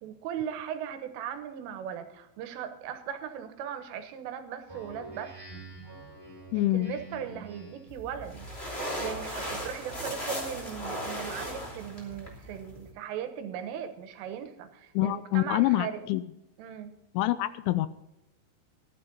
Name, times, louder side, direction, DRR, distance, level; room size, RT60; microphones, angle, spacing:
voice 1, 0.0-5.3 6.6-8.5 9.0-16.1 16.6-17.0, right 9 dB, 85° right, 8 dB, 3.7 m, -38 dB
Speech synthesizer, 4.7-8.0, right 2 dB, 5° right, 4.5 m, -46 dB
voice 2, 6.5-7.0 14.9-16.2 17.1-17.9, left 16 dB, 85° left, 14 dB, 2.9 m, -26 dB
sound 1, 7.9-12.9, equal, 20° left, 2.1 m, -37 dB
14.5 x 11.5 x 3.9 m, 0.92 s
omnidirectional pair, 5.7 m